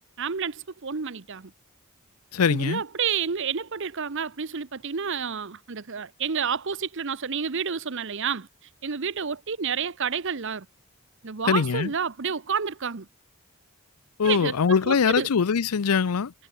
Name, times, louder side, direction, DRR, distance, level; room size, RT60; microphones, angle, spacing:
voice 1, 0.2-1.5 2.5-8.5 8.8-10.7 11.2-13.1 14.2-14.6 14.8-15.3, right 6 dB, 55° right, 0.8 m, -29 dB
voice 2, 2.3-2.8 11.5-11.9 14.2-16.3, left 6 dB, 85° left, 0.5 m, -22 dB
head